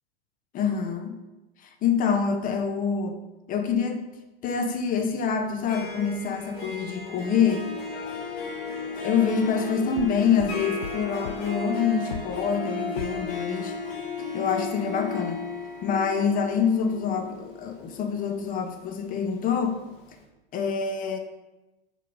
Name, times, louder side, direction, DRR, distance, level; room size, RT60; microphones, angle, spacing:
voice 1, 0.5-1.1 1.6-3.2 3.5-4.1 4.4-7.7 9.0-13.8 14.3-15.4 15.8-19.8 20.5-21.2, left 6 dB, 25° left, 6 dB, 0.9 m, -26 dB
Harp, 5.5-19.4, left 4 dB, 45° left, 1.8 m, -35 dB
sound 1, 7.9-13.4, left 7 dB, 85° left, 0.5 m, -40 dB
6.7 x 3.8 x 5.1 m, 1.0 s
figure-of-eight pair, 95°, 31 cm